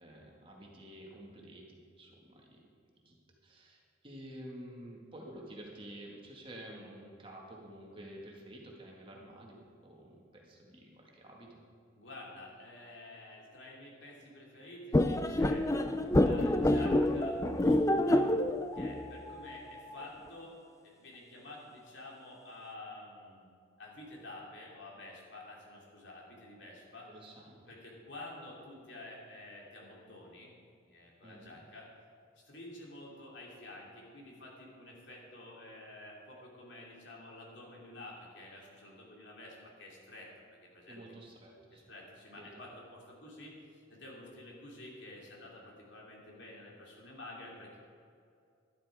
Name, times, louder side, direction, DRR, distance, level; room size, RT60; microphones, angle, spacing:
voice 1, 0.0-2.6 3.1-3.2 3.4-11.6 27.1-27.7 31.2-31.6 40.9-41.8 42.4-42.5, right 1 dB, 25° right, -1 dB, 1.8 m, -50 dB
voice 2, 11.9-18.3 18.7-20.6 20.8-23.5 23.8-27.1 27.7-30.5 30.9-31.9 32.4-40.3 40.7-41.0 41.7-47.8, left 2 dB, 65° left, -3 dB, 3.0 m, -50 dB
sound 1, 14.9-20.0, left 1 dB, 15° left, 0.4 m, -28 dB
12.0 x 12.0 x 4.9 m, 2.4 s
head